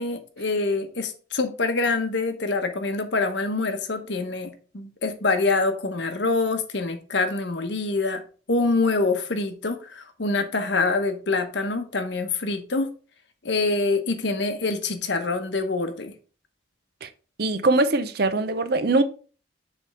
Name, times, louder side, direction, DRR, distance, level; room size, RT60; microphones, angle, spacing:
voice 1, 0.0-8.2 8.5-12.9 13.4-16.1, left 3 dB, 65° left, 1.0 m, -25 dB
voice 2, 17.4-19.0, right 2 dB, 50° right, 0.6 m, -22 dB
7.2 x 3.5 x 4.7 m
head